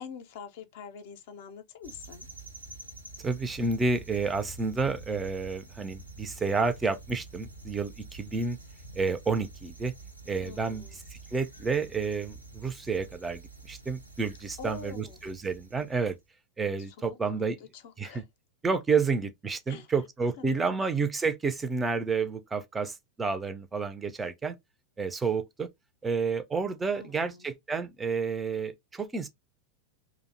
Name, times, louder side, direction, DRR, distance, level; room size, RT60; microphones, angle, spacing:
voice 1, 0.0-2.3 10.4-11.0 14.6-15.2 16.8-18.2 19.7-19.9 20.4-20.6 27.0-27.5, left 6 dB, 50° left, 0.4 m, -45 dB
sound 1, 1.8-16.2, right 3 dB, 90° right, 0.5 m, -48 dB
voice 2, 3.2-8.6 8.9-9.9 10.3-10.8 11.1-16.1 16.6-17.6 18.0-18.2 18.6-24.6 25.0-25.7 26.0-29.3, right 4 dB, 15° right, 0.4 m, -30 dB
2.5 x 2.0 x 2.4 m
figure-of-eight pair, 90°, 0 cm